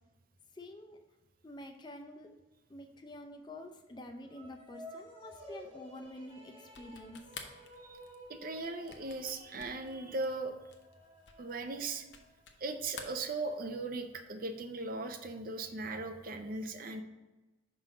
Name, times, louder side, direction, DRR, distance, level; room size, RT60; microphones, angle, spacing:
voice 1, 0.5-1.0 1.4-2.3 2.7-7.3, left 1 dB, 25° left, 5 dB, 0.5 m, -48 dB
sound 1, 4.2-12.7, equal, 30° right, 0.9 m, -54 dB
sound 2, 6.6-12.6 12.9-13.9, left 6 dB, 60° left, 0.7 m, -51 dB
voice 2, 8.3-10.6 11.4-12.1 12.6-17.0, right 3 dB, 45° right, 8 dB, 0.5 m, -38 dB
5.5 x 3.8 x 6.0 m, 1.1 s
head